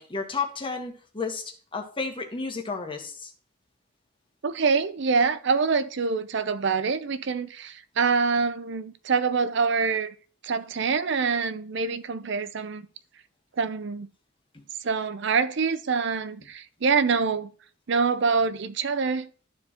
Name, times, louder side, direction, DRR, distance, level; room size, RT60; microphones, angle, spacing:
voice 1, 0.0-3.3 14.5-14.6, left 4 dB, 25° left, 1.4 m, -32 dB
voice 2, 4.4-10.1 10.4-12.9 13.6-14.1 14.8-17.5 17.9-19.3, right 5 dB, 60° right, 0.5 m, -25 dB
12.5 x 4.6 x 2.9 m
head